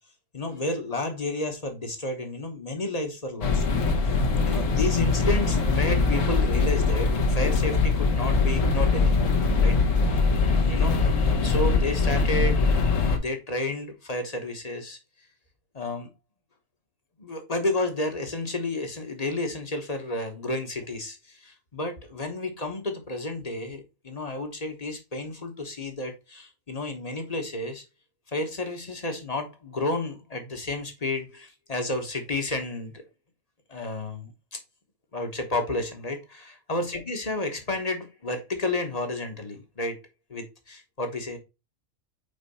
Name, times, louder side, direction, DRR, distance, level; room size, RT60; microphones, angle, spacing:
voice 1, 0.3-3.6 4.0-4.2 4.5-9.3 9.6-9.8 10.0-10.1 10.6-12.7 13.0-15.0 15.7-16.1 17.2-27.8 28.3-33.0 33.7-34.6 35.1-40.0 40.3-41.4, left 2 dB, 30° left, 1.2 m, -31 dB
sound 1, 3.4-13.2, left 4 dB, 70° left, 1.4 m, -22 dB
5.4 x 4.4 x 4.1 m
omnidirectional pair, 1.4 m